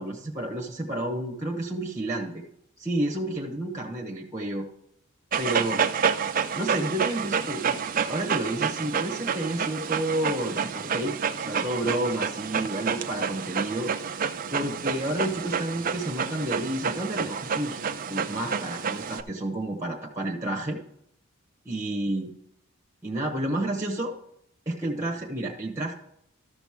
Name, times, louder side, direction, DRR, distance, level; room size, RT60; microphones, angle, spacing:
voice 1, 0.0-2.4 2.8-4.6 5.4-5.8 6.6-7.8 8.1-13.9 14.5-17.8 18.1-20.8 21.6-22.3 23.0-24.1 24.7-25.9, right 1 dB, 15° right, 2 dB, 1.0 m, -30 dB
Dog, 5.3-19.2, right 6 dB, 40° right, 0.4 m, -29 dB
13.5 x 6.1 x 3.6 m, 0.75 s
head